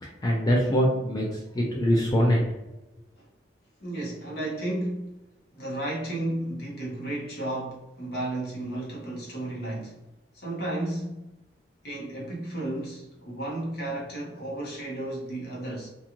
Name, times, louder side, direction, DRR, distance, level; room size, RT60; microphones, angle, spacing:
voice 1, 0.0-2.4, equal, 20° left, -2 dB, 0.4 m, -23 dB
voice 2, 3.8-5.2 5.5-10.0 10.3-11.3 11.8-15.9, right 1 dB, 60° left, -4 dB, 1.0 m, -33 dB
2.5 x 2.4 x 2.8 m, 0.95 s
head